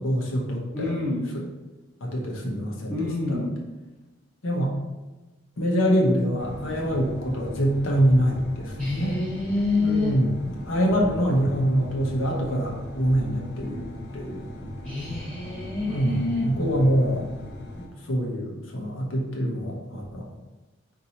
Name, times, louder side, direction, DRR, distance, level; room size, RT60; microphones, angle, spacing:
voice 1, 0.0-0.9 1.3-1.4 2.0-3.4 4.4-4.7 5.6-9.2 9.8-10.3 10.6-14.5 15.9-17.3 17.8-20.3, equal, 80° left, -1 dB, 0.8 m, -25 dB
voice 2, 0.7-1.3 2.9-3.6 8.8-10.2 14.8-16.5, left 2 dB, 5° left, -9 dB, 0.6 m, -27 dB
sound 1, 6.4-17.9, left 1 dB, 50° left, 0.6 m, -39 dB
4.0 x 2.6 x 4.3 m, 1.1 s
head